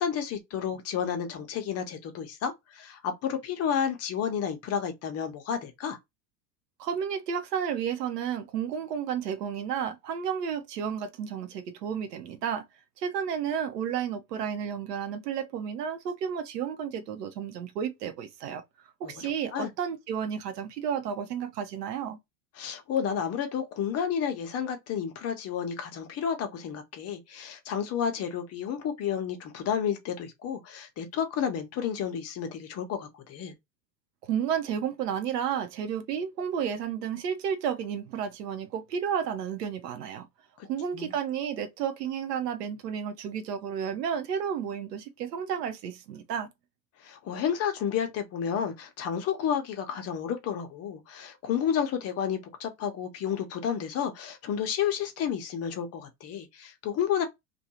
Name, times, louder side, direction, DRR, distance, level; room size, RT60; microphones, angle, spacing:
voice 1, 0.0-6.0 19.0-19.7 22.6-33.5 40.6-40.7 40.9-41.1 47.0-57.2, left 8 dB, 30° left, 0.7 m, -31 dB
voice 2, 6.8-12.6 13.0-18.6 19.0-22.2 34.2-40.3 40.6-46.5, right 8 dB, 80° right, 0.8 m, -32 dB
2.5 x 2.3 x 2.8 m
hypercardioid pair, 95°, 48 cm